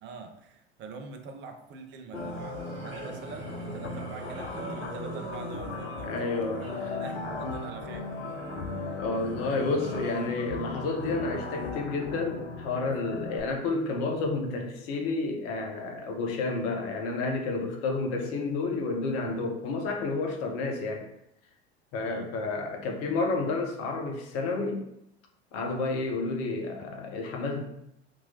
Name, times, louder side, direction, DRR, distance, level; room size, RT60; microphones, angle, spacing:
voice 1, 0.0-6.3 6.6-8.1 8.7-9.0 22.0-22.3, right 4 dB, 35° right, 5 dB, 0.6 m, -44 dB
sound 1, 2.1-13.4, left 3 dB, 85° left, 0.5 m, -38 dB
sound 2, 2.1-11.7, right 2 dB, 55° right, 1.3 m, -42 dB
voice 2, 6.0-7.0 9.0-21.1 21.9-24.9 25.5-27.6, left 3 dB, 45° left, 2 dB, 0.8 m, -30 dB
3.6 x 2.9 x 2.7 m, 0.80 s
figure-of-eight pair, 75°, 32 cm